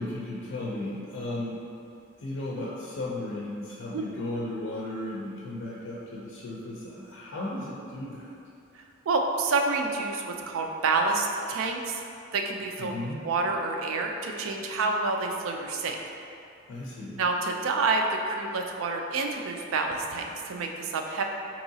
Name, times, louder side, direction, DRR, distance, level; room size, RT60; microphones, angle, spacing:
voice 1, 0.0-1.6 2.2-8.4 12.8-13.2 16.7-17.2, left 1 dB, 65° left, -5 dB, 0.4 m, -35 dB
voice 2, 8.7-12.0 12.3-12.9 13.2-16.0 17.2-21.2, right 3 dB, 90° right, 2 dB, 0.4 m, -28 dB
4.6 x 2.9 x 2.7 m, 2.6 s
head